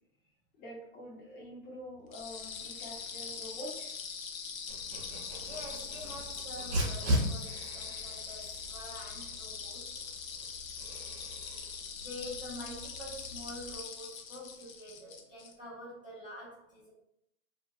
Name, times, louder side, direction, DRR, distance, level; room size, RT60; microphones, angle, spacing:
voice 1, 0.6-3.9, equal, 20° left, -4 dB, 0.8 m, -46 dB
sound 1, 2.1-15.5, left 6 dB, 85° left, 0.7 m, -42 dB
Dog, 4.7-13.8, equal, 60° right, 0.9 m, -38 dB
voice 2, 5.4-9.9 11.9-16.9, left 1 dB, 5° right, -15 dB, 0.3 m, -46 dB
2.7 x 2.7 x 2.4 m, 0.78 s
hypercardioid pair, 145°, 40 cm